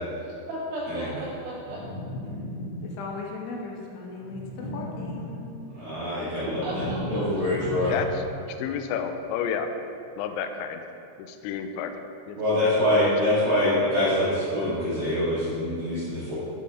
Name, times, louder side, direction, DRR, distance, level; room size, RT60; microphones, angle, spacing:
voice 1, 0.2-1.8 6.6-7.3, right 1 dB, 75° right, -4 dB, 2.6 m, -35 dB
sound 1, 1.6-3.2 4.2-5.7 6.1-8.4, left 1 dB, 60° left, 1.9 m, -35 dB
voice 2, 2.8-5.4, left 3 dB, 75° left, -1 dB, 3.3 m, -37 dB
voice 3, 5.7-7.9 12.4-16.4, left 1 dB, 55° right, -14 dB, 3.5 m, -25 dB
voice 4, 7.9-8.2 8.6-9.7 10.2-10.8 11.2-11.9 12.3-12.4 13.0-13.4, left 8 dB, 90° left, 6 dB, 2.5 m, -31 dB
12.0 x 5.8 x 3.7 m, 2.6 s
omnidirectional pair, 5.7 m